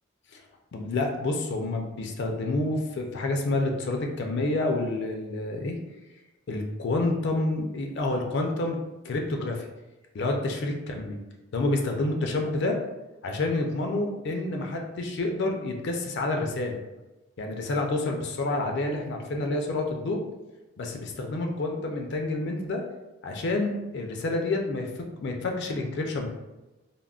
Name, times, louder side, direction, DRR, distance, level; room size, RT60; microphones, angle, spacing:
voice 1, 0.7-5.8 6.5-8.8 9.0-9.6 10.1-11.2 11.5-12.8 13.2-16.8 17.4-20.2 20.8-22.8 23.2-24.9 25.2-26.3, left 2 dB, 55° left, 3 dB, 0.4 m, -28 dB
3.5 x 2.0 x 2.3 m, 1.1 s
head